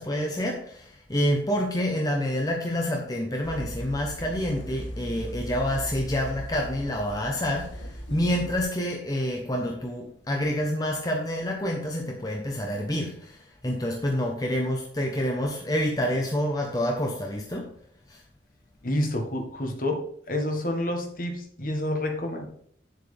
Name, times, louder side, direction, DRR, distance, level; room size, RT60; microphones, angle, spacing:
voice 1, 0.0-17.7 18.1-18.2, equal, 20° left, 0.9 m, -28 dB
sound 1, 3.4-8.6, equal, 90° left, 1.6 m, -38 dB
voice 2, 18.8-22.5, left 1 dB, 45° left, 1.6 m, -29 dB
9.2 x 7.6 x 3.4 m
head